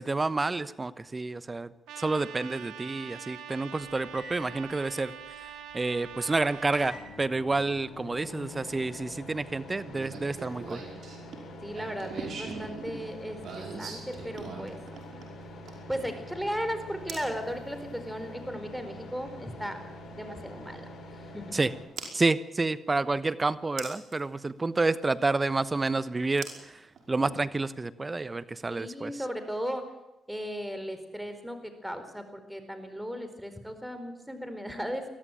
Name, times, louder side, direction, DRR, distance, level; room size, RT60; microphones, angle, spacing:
voice 1, 0.0-1.7 2.0-5.1 5.7-10.8 21.5-21.7 22.1-29.1, right 3 dB, 30° right, 15 dB, 1.1 m, -29 dB
Trumpet, 1.9-7.0, right 9 dB, 85° right, 1.8 m, -44 dB
sound 1, 3.8-21.8, left 1 dB, 65° left, 5.9 m, -46 dB
sound 2, 9.9-16.0 17.1-17.3 19.2-19.3 22.0-22.1 23.8-24.2 26.4-27.4, right 4 dB, 65° right, 5.2 m, -41 dB
voice 2, 11.6-14.8 15.9-19.8 20.1-20.9 21.3-21.5 28.7-29.9 30.3-35.1, equal, 5° right, 8 dB, 4.7 m, -36 dB
21.5 x 14.0 x 9.1 m, 0.96 s
supercardioid pair, 60°, 0 cm